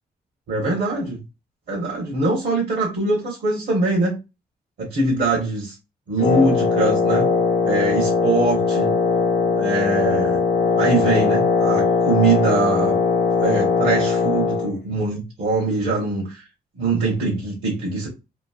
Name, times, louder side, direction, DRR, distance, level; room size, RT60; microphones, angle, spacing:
voice 1, 0.5-1.2 1.7-4.2 4.8-5.7 6.1-7.3 7.6-8.9 9.6-10.4 10.8-13.0 13.4-16.4 16.8-18.1, right 2 dB, 70° right, 1.2 m, -22 dB
Wind instrument woodwind instrument, 6.2-14.7, left 4 dB, 85° left, 0.6 m, -20 dB
3.1 x 2.7 x 2.4 m
supercardioid pair, 60°, 17 cm